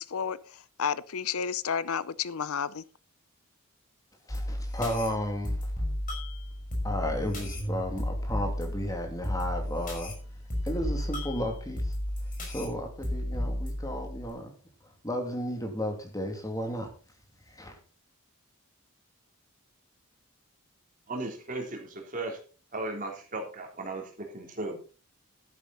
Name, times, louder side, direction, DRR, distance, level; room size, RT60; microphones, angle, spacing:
voice 1, 0.0-2.8, left 7 dB, 75° left, 0.6 m, -31 dB
sound 1, 4.3-14.3, left 1 dB, 35° left, 5.3 m, -33 dB
voice 2, 4.3-5.7 6.8-10.1 10.6-11.9 12.4-14.5 15.0-16.9 17.5-17.8, equal, 15° left, 2.7 m, -33 dB
voice 3, 21.1-22.4 22.7-24.8, right 2 dB, 35° right, 3.4 m, -36 dB
12.5 x 10.5 x 4.1 m
head